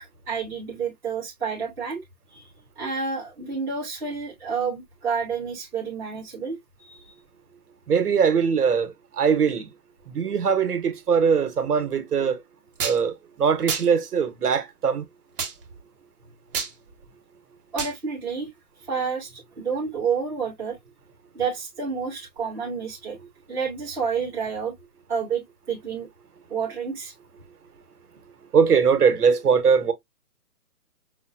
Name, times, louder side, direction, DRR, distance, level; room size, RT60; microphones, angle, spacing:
voice 1, 0.3-2.0 2.3-2.5 2.7-6.6 6.9-7.0 17.7-18.5 18.9-20.8 21.3-23.2 23.5-24.7 25.1-26.1 26.5-27.1, right 5 dB, 5° right, 0.9 m, -29 dB
voice 2, 7.9-9.7 10.1-12.4 12.8-15.0 23.2-23.3 28.5-29.9, right 6 dB, 80° right, 1.1 m, -21 dB
sound 1, 12.8-13.0 13.7-13.9 15.4-15.5 16.5-16.7 17.8-18.0, right 6 dB, 35° right, 1.0 m, -28 dB
5.4 x 2.1 x 2.5 m
hypercardioid pair, 155°, 46 cm